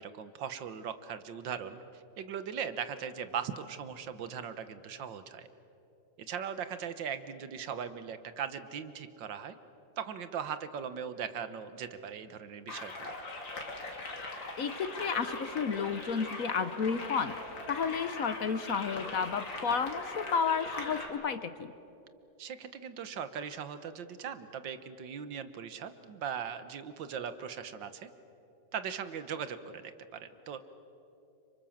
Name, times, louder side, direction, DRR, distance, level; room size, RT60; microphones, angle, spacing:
voice 1, 0.0-5.5 6.2-9.6 10.0-13.2 22.4-28.1 28.7-30.6, right 7 dB, 80° right, 11 dB, 1.8 m, -39 dB
sound 1, 12.7-21.1, left 2 dB, 90° left, 3.8 m, -41 dB
voice 2, 14.3-17.4 17.7-21.7, left 6 dB, 55° left, 11 dB, 1.2 m, -32 dB
30.0 x 27.0 x 7.3 m, 2.9 s
omnidirectional pair, 2.0 m